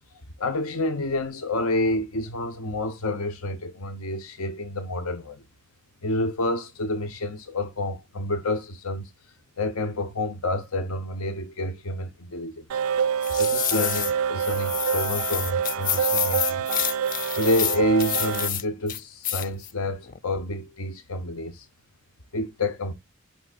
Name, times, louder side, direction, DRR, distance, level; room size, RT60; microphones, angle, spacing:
voice 1, 0.4-5.4 6.0-9.1 9.6-12.7 13.3-16.6 17.4-21.7 22.3-22.9, left 1 dB, 85° left, 0.9 m, -28 dB
sound 1, 12.7-18.5, right 7 dB, 85° right, 0.4 m, -26 dB
sound 2, 13.2-14.1 14.4-18.6 18.9-19.7 20.1-20.2, left 10 dB, 40° left, 0.4 m, -28 dB
8.7 x 5.8 x 2.4 m
head